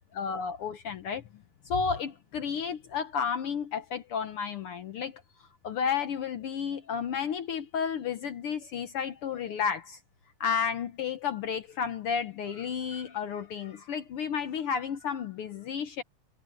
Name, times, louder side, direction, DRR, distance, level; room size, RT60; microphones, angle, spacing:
voice 1, 0.2-1.2 1.6-5.2 5.6-10.0 10.4-16.0, left 7 dB, 65° left, 1.5 m, -32 dB
omnidirectional pair, 3.3 m